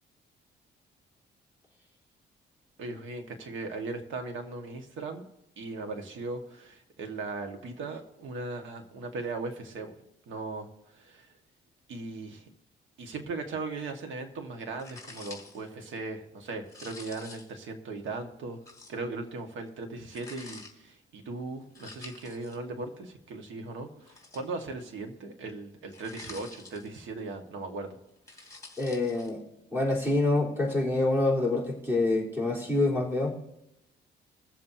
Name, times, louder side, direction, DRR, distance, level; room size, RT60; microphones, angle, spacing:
voice 1, 2.8-5.2 5.6-9.9 10.3-11.3 11.9-12.5 13.0-18.6 18.9-28.0 28.3-28.6, right 3 dB, 75° right, 4 dB, 1.7 m, -38 dB
sound 1, 14.8-15.7 16.7-17.6 18.7-19.0 20.1-20.7 21.8-22.6 24.0-24.8 25.9-27.1 28.1-29.3, left 3 dB, 15° left, 2.7 m, -48 dB
voice 2, 28.8-29.4 29.7-33.3, left 2 dB, 10° right, -3 dB, 3.6 m, -26 dB
22.0 x 7.4 x 2.8 m, 0.86 s
cardioid pair, 90°, 20 cm